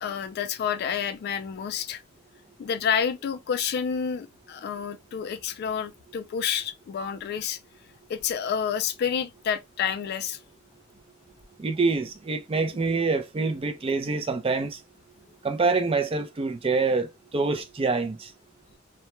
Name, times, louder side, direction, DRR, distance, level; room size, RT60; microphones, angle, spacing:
voice 1, 0.0-2.0 2.6-7.6 8.1-10.4, left 7 dB, 50° left, 0.3 m, -29 dB
voice 2, 11.6-14.8 15.4-18.3, right 4 dB, 30° right, 0.4 m, -26 dB
2.2 x 2.1 x 2.9 m
head